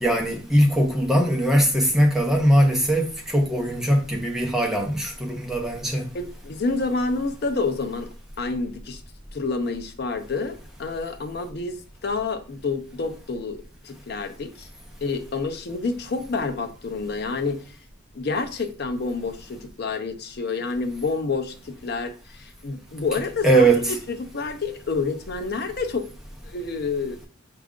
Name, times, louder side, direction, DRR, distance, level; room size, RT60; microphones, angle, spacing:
voice 1, 0.0-6.1 23.4-24.0, right 1 dB, ahead, 0.6 m, -20 dB
voice 2, 6.1-8.1 8.4-9.0 9.3-14.7 15.0-17.6 18.1-26.1 26.4-27.2, left 4 dB, 50° left, 0.5 m, -28 dB
4.5 x 2.4 x 3.6 m
head